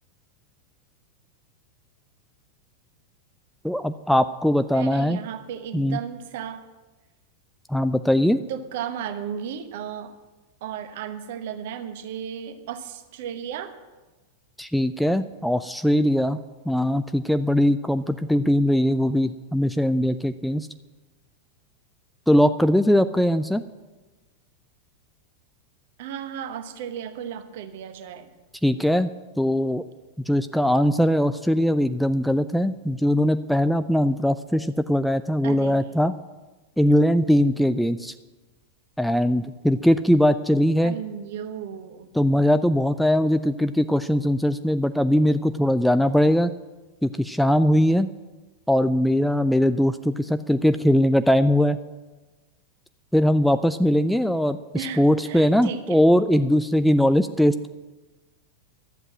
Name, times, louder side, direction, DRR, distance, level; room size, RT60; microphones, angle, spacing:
voice 1, 3.6-5.2 5.7-6.0 7.7-8.4 14.6-16.4 16.7-20.7 22.3-23.6 28.6-29.8 30.3-36.2 36.8-38.1 39.0-41.0 42.1-46.5 47.0-48.1 48.7-51.8 53.1-57.8, equal, ahead, 11 dB, 0.3 m, -21 dB
voice 2, 4.7-6.6 8.5-10.1 10.6-13.7 26.0-28.3 35.4-35.9 40.8-42.1 54.7-56.0, right 8 dB, 55° right, 9 dB, 1.0 m, -34 dB
12.0 x 7.9 x 7.6 m, 1.2 s
figure-of-eight pair, 90°, 0 cm